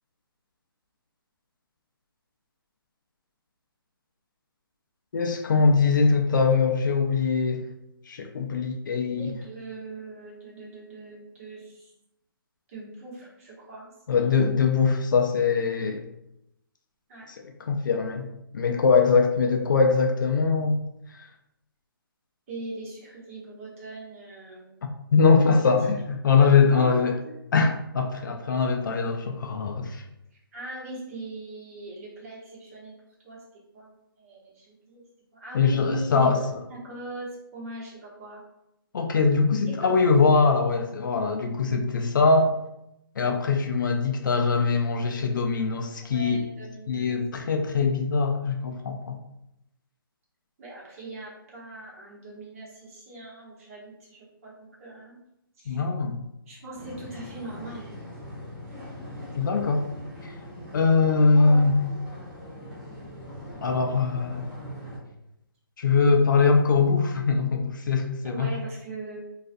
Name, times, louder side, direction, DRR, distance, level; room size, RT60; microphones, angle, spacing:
voice 1, 5.1-7.6 8.1-9.3 14.1-16.1 17.3-20.8 21.1-21.2 25.1-27.2 27.5-30.0 35.5-36.4 38.9-42.5 43.2-46.4 46.9-49.2 55.7-56.2 59.4-59.9 60.2-60.3 60.7-61.7 63.6-64.4 65.8-68.5, left 4 dB, 55° left, 3 dB, 0.4 m, -22 dB
voice 2, 9.2-11.9 12.7-14.4 17.1-17.3 22.5-24.8 25.4-25.5 26.7-27.1 30.3-32.9 33.2-33.4 33.7-33.9 34.2-35.0 35.3-36.3 36.7-38.4 39.8-40.0 46.0-47.1 50.6-55.2 55.6-55.8 56.5-58.1 59.4-59.5 61.3-61.7 68.2-69.2, right 2 dB, 35° right, -5 dB, 0.9 m, -40 dB
sound 1, 56.7-65.0, equal, 5° right, 0.5 m, -41 dB
2.4 x 2.3 x 2.5 m, 0.85 s
hypercardioid pair, 160°, 13 cm